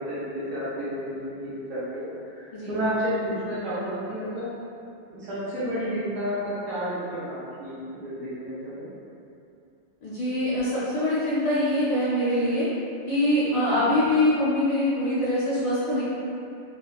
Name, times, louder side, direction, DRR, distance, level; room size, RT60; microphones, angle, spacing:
voice 1, 0.1-4.5 5.2-8.9, equal, 75° right, -13 dB, 1.5 m, -31 dB
voice 2, 10.0-12.7 13.1-16.0, left 1 dB, 70° left, -10 dB, 1.2 m, -24 dB
4.3 x 2.2 x 2.3 m, 2.6 s
omnidirectional pair, 2.4 m